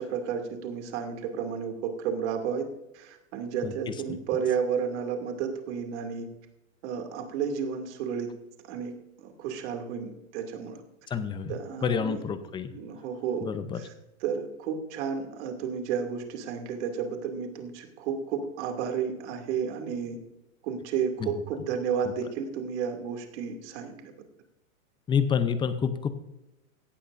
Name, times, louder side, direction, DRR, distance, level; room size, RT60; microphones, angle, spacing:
voice 1, 0.0-2.7 2.9-6.3 6.8-8.3 8.7-8.9 9.2-10.8 11.5-12.2 12.7-13.5 13.7-13.9 14.2-20.2 20.6-24.1, right 7 dB, 55° right, 4 dB, 2.6 m, -32 dB
voice 2, 3.6-4.2 11.1-12.7 13.4-13.8 21.2-21.3 25.1-26.1, left 7 dB, 10° left, 11 dB, 0.6 m, -29 dB
17.0 x 12.5 x 2.6 m, 0.94 s
supercardioid pair, 145°, 41 cm